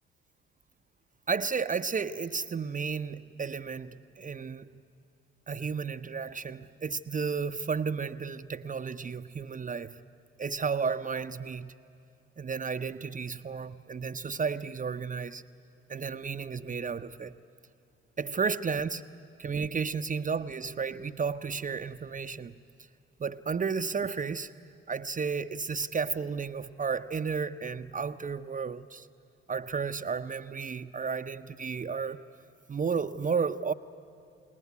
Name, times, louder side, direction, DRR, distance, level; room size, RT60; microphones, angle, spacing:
voice 1, 1.3-4.7 5.5-9.9 10.4-11.7 12.4-15.4 15.9-17.4 18.2-19.0 19.4-22.5 23.2-24.5 24.9-29.1 29.5-32.3 32.7-33.7, right 5 dB, 25° right, 0.7 m, -33 dB
28.0 x 19.5 x 9.7 m
figure-of-eight pair, 45°, 29 cm